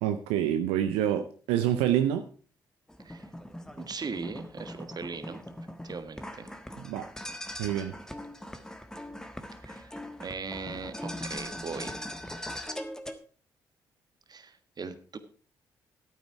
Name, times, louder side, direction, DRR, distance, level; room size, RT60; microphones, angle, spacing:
voice 1, 0.0-2.2 6.8-7.1 7.6-7.9, right 10 dB, 75° right, 8 dB, 0.6 m, -27 dB
sound 1, 2.9-13.1, left 1 dB, 5° left, 1.4 m, -41 dB
voice 2, 3.8-5.4 5.8-6.5 9.6-9.9 10.2-12.0 14.3-15.2, right 4 dB, 40° right, 10 dB, 1.5 m, -39 dB
12.0 x 9.1 x 4.7 m, 0.40 s
figure-of-eight pair, 40°, 11 cm